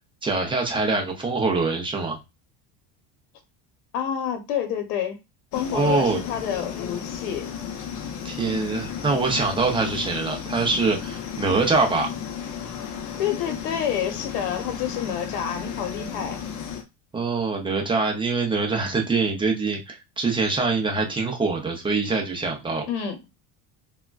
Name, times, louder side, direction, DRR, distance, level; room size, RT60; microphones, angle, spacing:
voice 1, 0.2-2.2 5.7-6.2 8.2-12.1 17.1-22.9, right 3 dB, 10° right, 0.4 m, -24 dB
voice 2, 3.9-5.2 5.5-7.5 13.2-16.4 22.9-23.2, left 9 dB, 90° left, 0.8 m, -28 dB
sound 1, 5.5-16.8, left 8 dB, 45° left, 0.6 m, -34 dB
3.5 x 2.2 x 2.2 m
cardioid pair, 140°, 43 cm